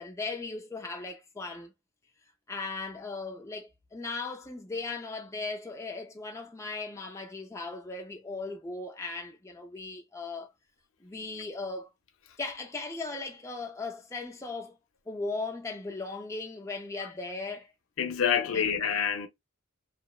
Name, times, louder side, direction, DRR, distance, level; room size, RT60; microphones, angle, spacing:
voice 1, 0.0-1.7 2.5-10.5 11.0-11.9 12.4-14.8 15.1-17.7 18.5-18.7, left 3 dB, 15° left, 0.3 m, -37 dB
voice 2, 18.0-19.3, left 7 dB, 75° left, 0.5 m, -27 dB
2.8 x 2.1 x 2.2 m
head